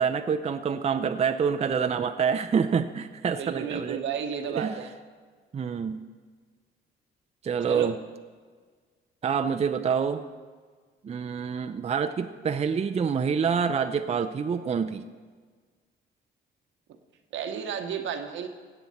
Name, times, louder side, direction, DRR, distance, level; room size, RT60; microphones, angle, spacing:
voice 1, 0.0-4.0 4.5-4.7 5.5-6.0 7.4-7.9 9.2-10.2 11.0-15.0, right 6 dB, 30° right, 8 dB, 0.5 m, -27 dB
voice 2, 3.4-4.9 7.7-7.9 17.3-18.5, right 7 dB, 75° right, 6 dB, 1.1 m, -32 dB
16.5 x 8.0 x 4.3 m, 1.6 s
cardioid pair, 90°, 20 cm